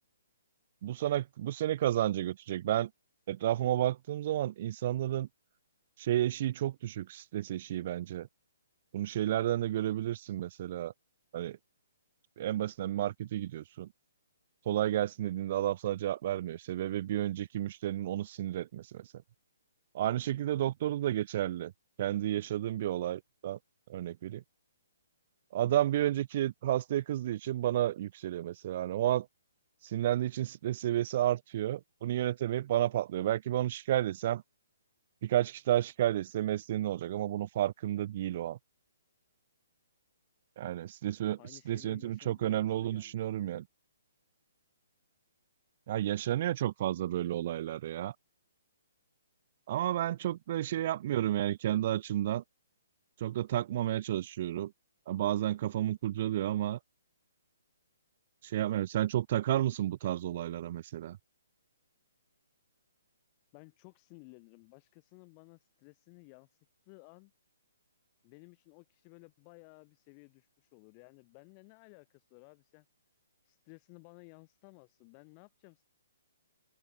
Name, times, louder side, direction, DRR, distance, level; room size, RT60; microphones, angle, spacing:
voice 1, 0.8-2.9 3.3-5.3 6.0-8.3 8.9-10.9 11.3-11.6 12.4-13.9 14.7-19.1 19.9-21.7 22.0-23.6 23.9-24.4 25.5-29.3 29.8-34.4 35.2-38.6 40.6-41.4 41.7-43.6 45.9-48.1 49.7-52.4 53.2-54.7 55.1-56.8 58.4-61.2, right 12 dB, 40° right, 0.5 m, -31 dB
voice 2, 41.4-43.6 50.6-50.9 63.5-67.3 68.2-72.8 73.4-75.8, left 40 dB or more, 25° left, 4.9 m, -56 dB
hypercardioid pair, 165°, 0 cm